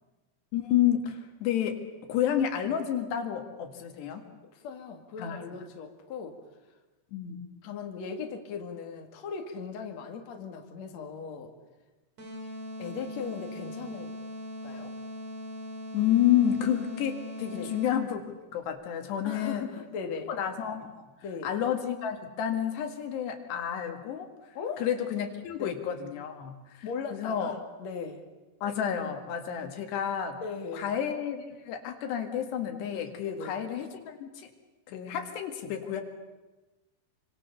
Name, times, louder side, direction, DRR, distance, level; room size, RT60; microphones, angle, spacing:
voice 1, 0.5-1.8 2.1-4.2 5.2-5.4 7.1-7.4 15.9-18.2 18.5-19.6 20.1-21.1 21.4-24.3 24.8-26.8 27.1-27.5 28.6-30.4 30.7-34.5 34.9-36.0, left 10 dB, 80° left, 5 dB, 4.1 m, -30 dB
voice 2, 4.5-6.4 7.6-11.5 12.8-14.1 14.6-14.9 17.5-17.7 19.2-20.3 21.2-21.5 24.5-24.8 25.6-25.8 26.8-28.2 30.4-30.9 33.2-33.6, left 5 dB, 45° left, 3 dB, 3.2 m, -38 dB
sound 1, 12.2-18.1, left 1 dB, 40° right, 5.5 m, -40 dB
28.5 x 25.5 x 7.0 m, 1.1 s
omnidirectional pair, 4.9 m